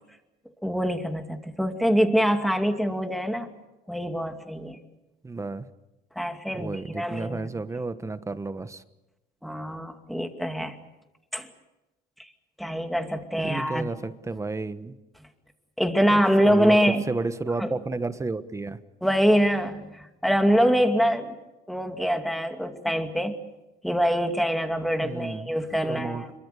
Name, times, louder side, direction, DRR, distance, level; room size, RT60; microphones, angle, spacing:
voice 1, 0.6-3.5 3.9-4.8 6.2-7.6 9.4-10.8 11.3-11.5 12.6-13.9 15.8-17.1 17.6-17.7 19.0-21.4 21.7-23.4 23.8-26.3, equal, ahead, 6 dB, 2.5 m, -24 dB
voice 2, 5.2-5.7 6.5-8.8 13.4-14.9 16.1-16.8 17.1-18.8 25.0-25.5 25.8-26.2, right 3 dB, 15° right, 12 dB, 1.2 m, -32 dB
26.0 x 23.5 x 6.9 m, 0.99 s
cardioid pair, 110°, 17 cm